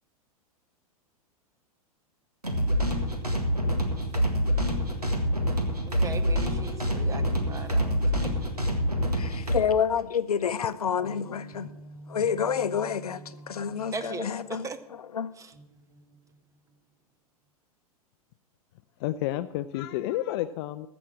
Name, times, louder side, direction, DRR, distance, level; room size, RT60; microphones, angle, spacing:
sound 1, 2.4-9.6, equal, 90° right, 1.8 m, -26 dB
pl-organlike-acidinside, 5.9-9.5 11.0-14.7 15.5-16.7, equal, 60° right, 4.6 m, -48 dB
voice 1, 6.0-7.2 7.5-8.3 13.9-14.8 15.4-15.5, right 4 dB, 15° right, 0.8 m, -38 dB
voice 2, 9.1-11.7 12.1-15.3, left 7 dB, 75° left, 0.7 m, -29 dB
voice 3, 19.0-20.9, left 14 dB, 40° left, 0.5 m, -30 dB
15.0 x 6.2 x 7.4 m
figure-of-eight pair, 100°, 19 cm